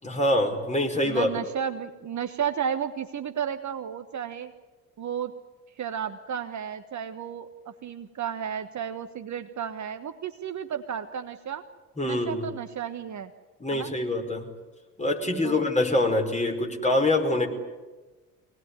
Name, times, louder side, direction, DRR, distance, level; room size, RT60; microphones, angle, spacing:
voice 1, 0.0-1.3 12.0-12.5 13.6-14.5 15.0-17.5, left 1 dB, 15° left, 2 dB, 5.1 m, -25 dB
voice 2, 1.0-4.5 5.0-5.3 5.8-11.6 12.0-13.3 13.7-13.9 15.4-15.6, right 8 dB, 40° right, 8 dB, 1.4 m, -33 dB
24.0 x 19.0 x 9.7 m, 1.2 s
figure-of-eight pair, 55°, 46 cm